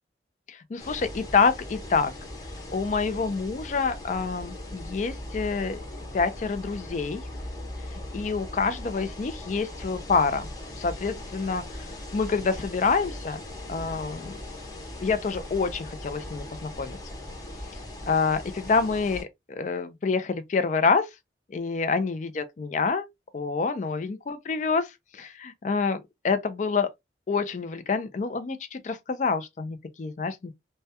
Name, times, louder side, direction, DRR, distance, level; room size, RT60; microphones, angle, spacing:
voice 1, 0.5-2.1 2.7-5.8 6.1-7.2 8.1-10.5 10.7-11.9 12.1-13.4 13.7-14.4 15.0-17.0 18.1-21.1 21.5-23.1 23.3-26.9 27.3-30.5, left 4 dB, 40° left, 0.4 m, -27 dB
sound 1, 0.8-19.2, left 1 dB, 20° left, 0.7 m, -39 dB
2.2 x 2.1 x 2.7 m
head